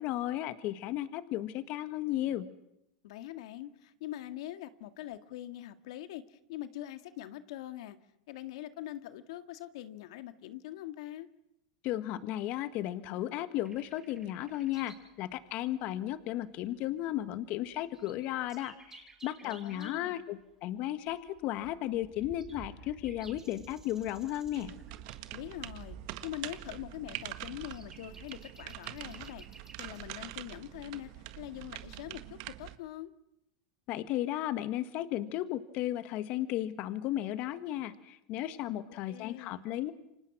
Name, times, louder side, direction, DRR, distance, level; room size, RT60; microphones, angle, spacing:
voice 1, 0.0-2.5 11.8-24.7 33.9-39.9, left 13 dB, 50° left, 11 dB, 1.6 m, -34 dB
voice 2, 3.0-8.0 8.3-11.3 19.4-20.3 25.3-26.0 26.2-33.1 39.1-39.7, left 13 dB, 70° left, 10 dB, 1.8 m, -43 dB
sound 1, 13.7-15.1 15.4-15.5 16.2-16.3 16.5-16.8 17.3-17.4 17.6-20.1 20.7-30.0 30.8-31.0, right 4 dB, 15° right, 6.2 m, -54 dB
sound 2, 24.5-32.8, right 16 dB, 60° right, 1.6 m, -44 dB
29.0 x 25.5 x 6.1 m, 0.84 s
hypercardioid pair, 115°, 3 cm